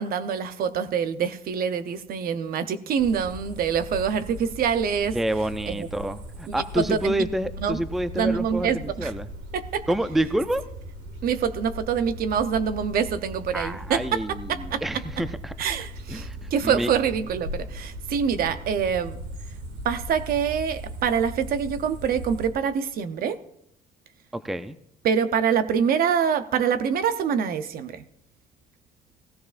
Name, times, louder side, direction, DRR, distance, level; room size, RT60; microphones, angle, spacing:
voice 1, 0.0-5.2 5.7-5.9 6.8-7.1 7.6-7.8 8.1-9.1 9.5-9.8 11.2-14.8 15.6-19.2 19.8-23.4 25.0-28.0, right 7 dB, 60° right, 11 dB, 0.8 m, -25 dB
sound 1, 3.0-22.5, right 1 dB, 90° right, 2.0 m, -38 dB
voice 2, 5.1-9.3 9.9-10.6 13.5-15.5 16.1-16.9 24.3-24.7, right 1 dB, ahead, 12 dB, 0.5 m, -28 dB
16.5 x 15.0 x 2.5 m, 0.74 s
cardioid pair, 110°, 17 cm